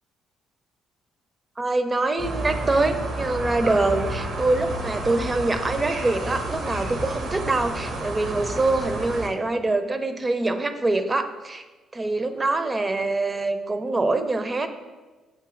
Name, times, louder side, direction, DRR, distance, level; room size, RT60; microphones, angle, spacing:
voice 1, 1.6-11.6 11.9-14.7, right 2 dB, 30° right, 9 dB, 0.5 m, -24 dB
sound 1, 2.2-9.3, right 1 dB, 65° right, 0.7 m, -31 dB
7.7 x 2.7 x 2.5 m, 1.2 s
hypercardioid pair, 50°, 0 cm